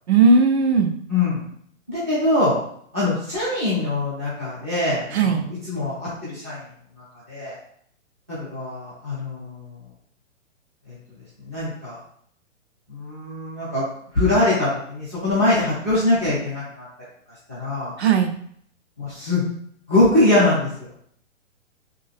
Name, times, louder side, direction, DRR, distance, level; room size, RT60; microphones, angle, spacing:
voice 1, 0.1-0.9 5.1-5.5 18.0-18.3, right 4 dB, 55° right, 6 dB, 0.6 m, -17 dB
voice 2, 1.1-1.4 1.9-2.5 2.9-6.6 7.3-7.6 8.3-9.8 10.9-11.0 11.5-12.0 12.9-13.9 14.1-16.9 17.5-17.9 19.0-19.4 19.9-20.9, left 2 dB, 15° right, -10 dB, 0.4 m, -22 dB
3.4 x 2.7 x 3.3 m, 0.65 s
hypercardioid pair, 170°, 39 cm